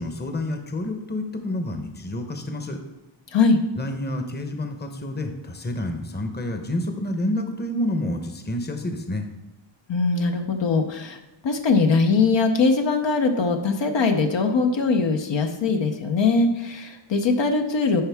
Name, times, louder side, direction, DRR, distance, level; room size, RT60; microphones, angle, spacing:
voice 1, 0.0-2.8 3.7-9.3, left 1 dB, 20° left, 6 dB, 0.9 m, -29 dB
voice 2, 9.9-11.2 11.4-18.0, left 4 dB, 65° left, 5 dB, 0.8 m, -21 dB
10.5 x 4.4 x 3.5 m, 0.97 s
wide cardioid pair, 85°, 47 cm